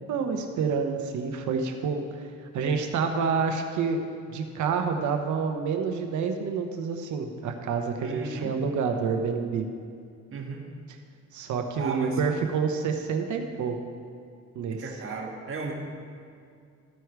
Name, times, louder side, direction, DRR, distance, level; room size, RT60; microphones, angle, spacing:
voice 1, 0.0-2.2 2.5-4.0 4.3-9.7 11.3-13.8 14.5-14.8, right 5 dB, 75° right, 5 dB, 1.0 m, -28 dB
voice 2, 8.0-8.5 10.3-10.6 11.8-12.2 14.7-15.7, right 4 dB, 45° right, 0 dB, 1.6 m, -35 dB
14.0 x 4.7 x 4.7 m, 2.3 s
cardioid pair, 90°, 30 cm